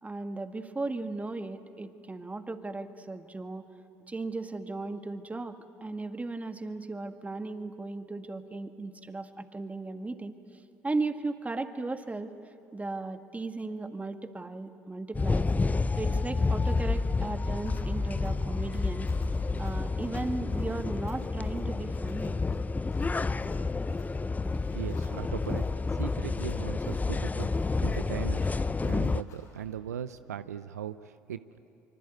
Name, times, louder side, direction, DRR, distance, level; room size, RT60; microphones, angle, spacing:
voice 1, 0.0-3.7 4.1-15.5 16.0-19.1 19.6-22.3, right 3 dB, 15° right, 8 dB, 1.8 m, -36 dB
sound 1, 15.1-29.2, left 3 dB, 20° left, 0.7 m, -29 dB
sound 2, 17.6-29.6, left 4 dB, 80° left, 6.4 m, -57 dB
voice 2, 24.5-28.6 28.8-31.4, right 9 dB, 90° right, 13 dB, 0.6 m, -39 dB
25.5 x 24.5 x 9.2 m, 2.9 s
hypercardioid pair, 60°, 8 cm